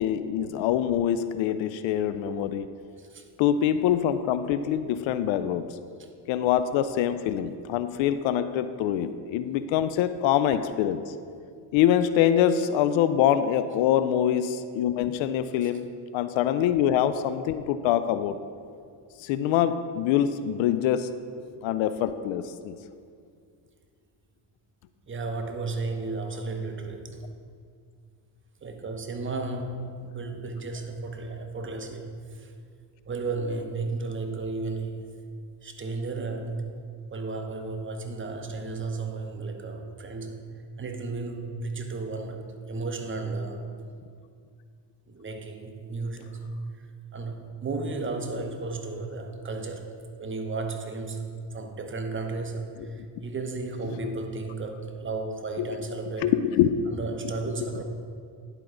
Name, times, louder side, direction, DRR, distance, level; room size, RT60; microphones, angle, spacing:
voice 1, 0.0-2.7 3.4-5.7 6.3-11.1 11.7-18.4 19.2-21.1 21.6-22.7 52.9-53.0 55.6-55.7 56.2-56.7 57.6-57.8, left 10 dB, 70° left, 12 dB, 0.5 m, -24 dB
voice 2, 3.0-3.3 6.0-6.1 15.6-15.8 25.1-27.2 28.6-32.5 33.1-35.1 35.6-36.6 37.1-40.4 40.8-43.7 45.1-46.4 46.7-46.9 47.1-56.3 56.9-57.8, right 3 dB, 25° right, 5 dB, 0.9 m, -34 dB
10.5 x 4.5 x 3.8 m, 2.2 s
supercardioid pair, 80°, 48 cm